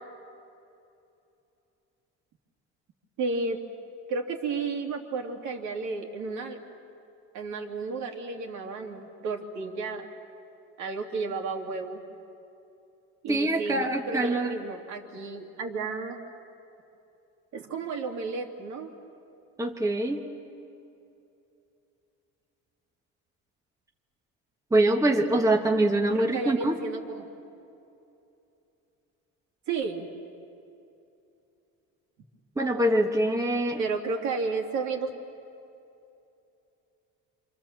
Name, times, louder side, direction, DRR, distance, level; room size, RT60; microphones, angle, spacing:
voice 1, 3.2-3.6 4.1-6.6 7.3-10.1 10.8-12.0 13.2-16.2 17.5-18.9 26.1-27.3 29.7-30.1 33.8-35.1, right 4 dB, 60° right, 2 dB, 2.8 m, -32 dB
voice 2, 13.3-14.6 19.6-20.3 24.7-26.8 32.6-33.8, right 1 dB, 10° right, 2 dB, 1.4 m, -24 dB
27.0 x 27.0 x 7.5 m, 2.7 s
cardioid pair, 140°, 32 cm